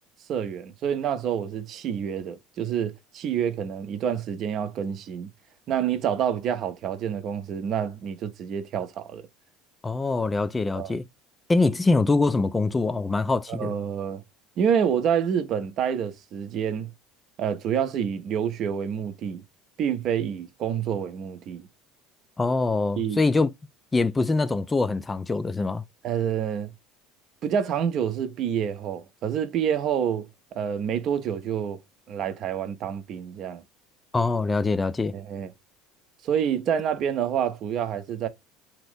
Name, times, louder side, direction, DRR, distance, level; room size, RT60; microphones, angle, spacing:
voice 1, 0.3-5.3 5.7-9.2 10.7-11.0 13.5-14.2 14.6-16.9 17.4-19.4 19.8-21.7 23.0-23.2 26.0-26.7 27.4-30.3 30.5-31.8 32.1-33.6 35.1-35.5 36.2-38.3, right 8 dB, 50° right, 0.6 m, -27 dB
voice 2, 9.8-11.1 11.5-13.7 22.4-23.5 23.9-25.8 34.1-35.1, left 3 dB, 20° left, 0.3 m, -24 dB
2.9 x 2.5 x 3.4 m
figure-of-eight pair, 65°, 0 cm